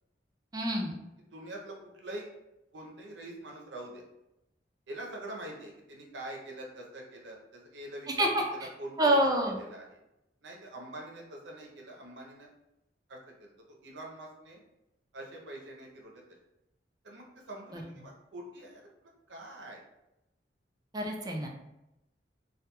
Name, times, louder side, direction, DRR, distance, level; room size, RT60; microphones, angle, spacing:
voice 1, 0.5-1.0 8.2-8.4 9.0-9.6 17.7-17.8 20.9-21.5, right 1 dB, 20° right, 1 dB, 0.4 m, -27 dB
voice 2, 1.2-2.3 2.7-4.0 4.9-9.3 9.6-10.0 10.4-12.5 13.1-14.6 15.1-16.2 17.0-19.8, right 1 dB, 90° right, 0 dB, 0.6 m, -45 dB
2.9 x 2.3 x 2.2 m, 0.89 s
head